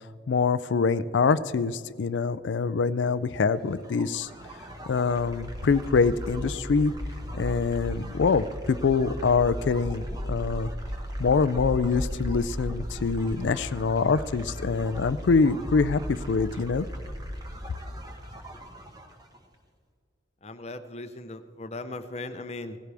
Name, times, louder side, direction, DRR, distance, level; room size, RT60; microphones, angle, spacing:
voice 1, 0.3-4.3 4.9-6.9 7.3-10.7 11.2-16.9, left 4 dB, 70° left, 15 dB, 0.4 m, -25 dB
sound 1, 3.7-19.4, equal, 20° right, 1.3 m, -36 dB
voice 2, 20.4-22.8, left 2 dB, 35° left, 10 dB, 0.7 m, -38 dB
18.0 x 15.5 x 3.4 m, 2.1 s
head